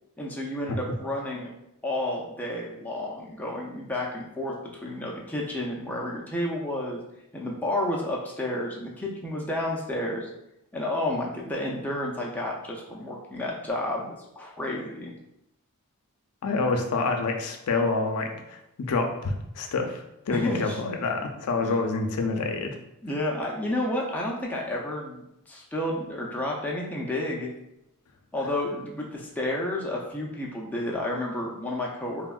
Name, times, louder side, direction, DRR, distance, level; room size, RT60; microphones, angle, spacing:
voice 1, 0.2-1.5 1.8-7.0 7.3-10.3 10.7-15.1 20.3-20.8 21.6-21.7 23.0-27.5 28.3-32.3, left 1 dB, 5° left, -3 dB, 0.4 m, -31 dB
voice 2, 16.4-22.8, left 3 dB, 85° left, 3 dB, 0.4 m, -27 dB
3.4 x 2.1 x 2.3 m, 0.86 s
head